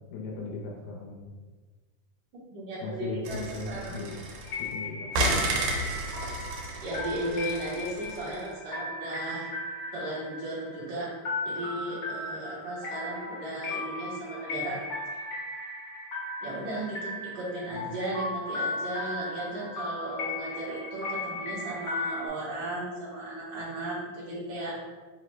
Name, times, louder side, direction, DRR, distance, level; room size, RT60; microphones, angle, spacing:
voice 1, 0.1-1.2 2.8-4.2 4.6-5.4 17.7-18.0, left 3 dB, 80° left, -1 dB, 1.9 m, -38 dB
voice 2, 2.5-3.4 3.7-4.1 6.8-9.5 9.9-11.1 11.4-14.8 15.1-15.2 16.4-24.8, right 1 dB, 70° right, -8 dB, 1.1 m, -35 dB
sound 1, 3.3-4.7 5.1-8.4, right 1 dB, 85° right, 2.2 m, -32 dB
sound 2, 4.4-22.3, left 2 dB, 55° left, 1.3 m, -36 dB
4.8 x 2.0 x 4.3 m, 1.3 s
omnidirectional pair, 3.5 m